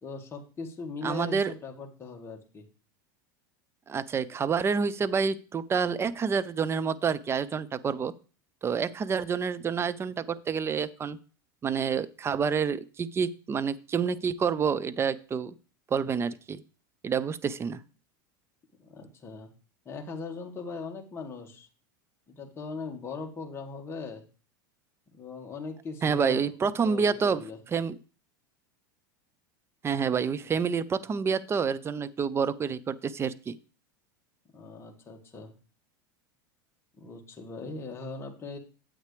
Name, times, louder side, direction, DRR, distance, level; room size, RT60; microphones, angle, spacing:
voice 1, 0.0-2.6 18.8-19.5 19.9-21.7 22.3-24.2 25.1-26.6 26.8-27.6 30.0-30.5 34.5-35.5 37.0-38.6, left 4 dB, 20° left, 1 dB, 1.8 m, -40 dB
voice 2, 1.0-1.5 3.9-8.1 8.6-11.2 11.6-15.5 15.9-16.6 17.0-17.8 26.0-27.4 27.7-27.9 29.8-33.6, right 6 dB, 20° right, 17 dB, 0.6 m, -28 dB
9.4 x 8.0 x 3.3 m, 0.37 s
supercardioid pair, 110°, 11 cm